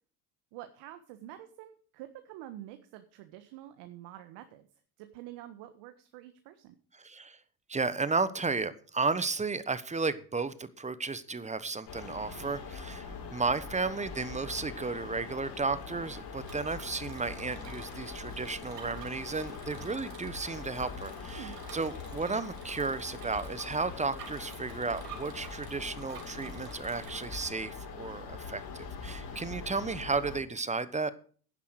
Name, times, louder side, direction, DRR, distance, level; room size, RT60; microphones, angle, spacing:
voice 1, 0.5-4.7 5.0-6.7 21.3-21.6, right 13 dB, 60° right, 9 dB, 1.5 m, -47 dB
voice 2, 7.0-7.4 7.7-31.1, right 4 dB, 15° right, 15 dB, 1.1 m, -33 dB
sound 1, 11.9-30.4, left 5 dB, 55° left, 6.1 m, -43 dB
Bicycle, 15.7-27.5, right 5 dB, 90° right, 3.3 m, -50 dB
11.0 x 10.5 x 4.8 m, 0.43 s
hypercardioid pair, 80°, 47 cm